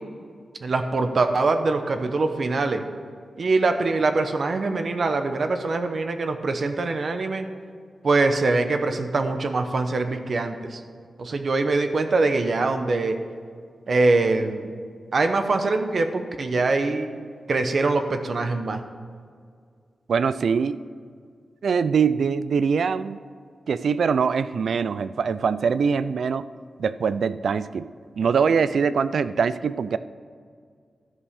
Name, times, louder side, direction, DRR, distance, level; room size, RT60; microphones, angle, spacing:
voice 1, 0.6-2.8 3.4-7.5 8.0-10.8 11.2-13.2 13.9-14.7 15.1-17.1 17.5-18.8, right 3 dB, 55° right, 7 dB, 0.9 m, -23 dB
voice 2, 20.1-20.8 21.6-23.2 23.7-26.4 26.8-27.9 28.2-30.0, right 6 dB, 80° right, 14 dB, 0.3 m, -23 dB
13.0 x 5.4 x 6.6 m, 2.1 s
wide cardioid pair, 120°, 0 cm